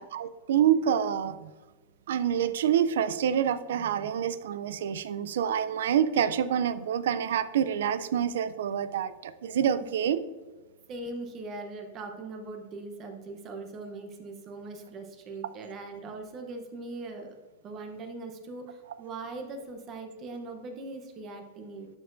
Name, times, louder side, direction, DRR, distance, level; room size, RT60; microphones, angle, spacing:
voice 1, 0.0-1.5 2.1-10.2, right 9 dB, 75° right, 14 dB, 0.4 m, -27 dB
voice 2, 10.9-17.4 17.6-21.9, right 3 dB, 25° right, 5 dB, 0.8 m, -40 dB
11.5 x 4.4 x 2.6 m, 1.3 s
supercardioid pair, 160°, 0 cm